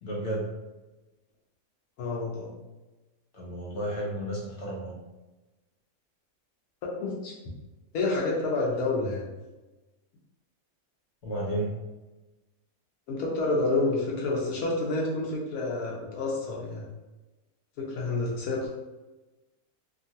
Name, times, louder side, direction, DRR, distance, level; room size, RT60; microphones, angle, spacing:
voice 1, 0.0-0.5 3.3-5.0 11.2-11.8, right 1 dB, 60° left, -4 dB, 0.9 m, -32 dB
voice 2, 2.0-2.5 6.8-7.3 7.9-9.3 13.1-16.9 17.8-18.7, left 2 dB, 90° left, -2 dB, 1.2 m, -29 dB
2.9 x 2.4 x 2.7 m, 1.1 s
omnidirectional pair, 1.5 m